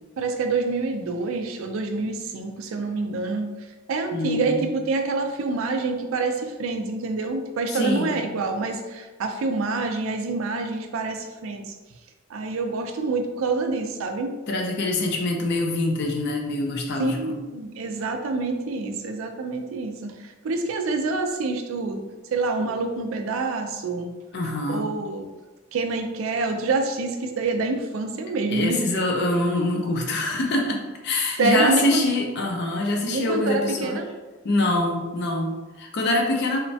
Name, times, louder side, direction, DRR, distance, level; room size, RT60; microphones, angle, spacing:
voice 1, 0.2-3.5 3.9-11.7 12.3-14.4 17.0-22.0 22.3-24.1 24.7-25.3 25.7-28.8 31.4-32.1 33.1-34.1, right 3 dB, 75° right, 5 dB, 0.4 m, -27 dB
voice 2, 4.1-4.6 7.7-8.2 14.5-17.4 22.6-22.7 24.3-24.9 28.5-34.0 34.4-36.6, left 2 dB, 55° left, 1 dB, 0.4 m, -24 dB
3.0 x 2.1 x 2.6 m, 1.2 s
head